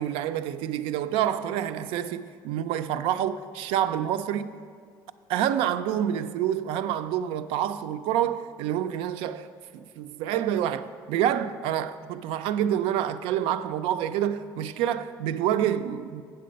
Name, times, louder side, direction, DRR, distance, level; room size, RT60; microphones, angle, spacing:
voice 1, 0.0-4.5 5.3-9.5 10.0-16.2, right 10 dB, 80° right, 0.4 m, -27 dB
8.5 x 6.7 x 5.2 m
cardioid pair, 105°, 9 cm